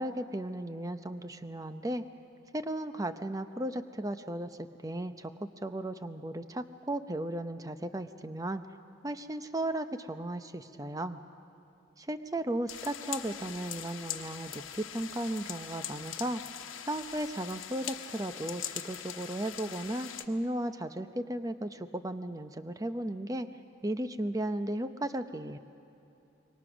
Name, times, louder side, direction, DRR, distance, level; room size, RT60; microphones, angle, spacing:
voice 1, 0.0-2.0 2.5-5.3 5.6-8.6 9.0-11.2 12.0-16.4 16.9-23.5 23.8-25.6, right 1 dB, 15° right, 10 dB, 0.7 m, -35 dB
sound 1, 12.7-20.2, left 10 dB, 90° left, 1.1 m, -42 dB
26.5 x 22.5 x 6.2 m, 2.8 s
head